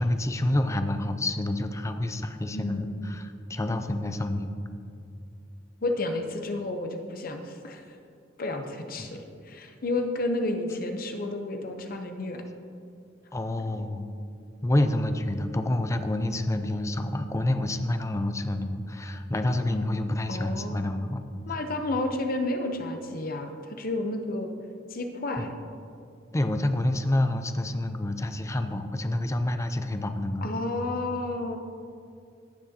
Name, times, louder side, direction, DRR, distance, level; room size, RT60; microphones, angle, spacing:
voice 1, 0.0-4.5 9.0-9.1 13.3-14.1 14.6-21.2 25.4-25.5 26.3-30.5, left 1 dB, 15° left, 8 dB, 0.4 m, -28 dB
voice 2, 2.5-2.9 5.8-7.8 8.4-12.4 20.3-20.8 21.5-24.5 24.9-25.5 30.4-31.6, left 2 dB, 50° left, 4 dB, 0.8 m, -31 dB
16.5 x 6.2 x 2.9 m, 2.5 s
head